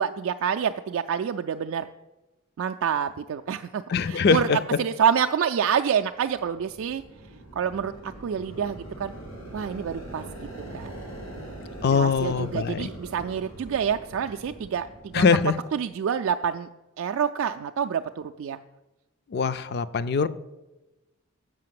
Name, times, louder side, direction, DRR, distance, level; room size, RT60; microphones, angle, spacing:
voice 1, 0.0-1.9 2.6-7.0 7.6-9.1 9.5-10.5 10.7-10.9 11.9-15.2 15.7-16.7 17.0-18.6, right 7 dB, 65° right, 6 dB, 0.3 m, -27 dB
voice 2, 3.9-4.6 11.8-12.9 15.1-15.5 19.3-20.3, left 5 dB, 50° left, 14 dB, 0.4 m, -22 dB
sound 1, 6.1-15.9, right 1 dB, 90° left, 3.5 m, -42 dB
7.6 x 5.8 x 7.6 m, 1.1 s
head